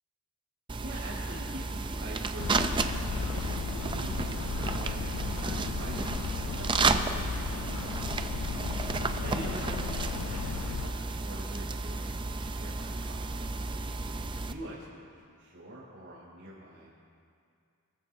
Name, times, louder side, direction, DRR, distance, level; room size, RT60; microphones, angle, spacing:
sound 1, 0.7-14.5, right 3 dB, 25° right, 0.5 m, -32 dB
voice 1, 0.8-6.2 6.4-8.1 9.2-13.4 13.8-15.1 15.4-17.0, right 1 dB, 90° right, -10 dB, 3.9 m, -45 dB
sound 2, 2.4-10.9, left 8 dB, 85° left, 0.3 m, -36 dB
23.5 x 15.0 x 2.7 m, 2.4 s
head